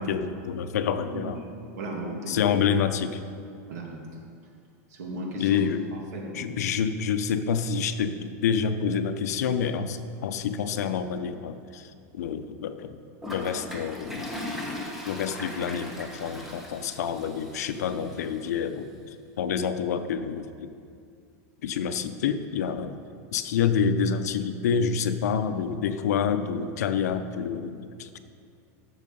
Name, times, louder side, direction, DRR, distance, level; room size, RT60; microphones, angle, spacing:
voice 1, 0.0-1.4 2.3-3.2 5.4-5.9 6.3-13.0 13.3-14.4 15.0-20.7 21.6-23.0 23.3-28.2, left 7 dB, 80° left, 10 dB, 0.7 m, -28 dB
voice 2, 1.7-2.4 3.7-3.9 4.9-5.6 6.1-6.5, right 2 dB, 80° right, -1 dB, 2.5 m, -35 dB
Toilet flush, 13.2-18.3, left 1 dB, 5° right, 1.0 m, -38 dB
14.0 x 6.7 x 5.3 m, 2.4 s
supercardioid pair, 180°, 9 cm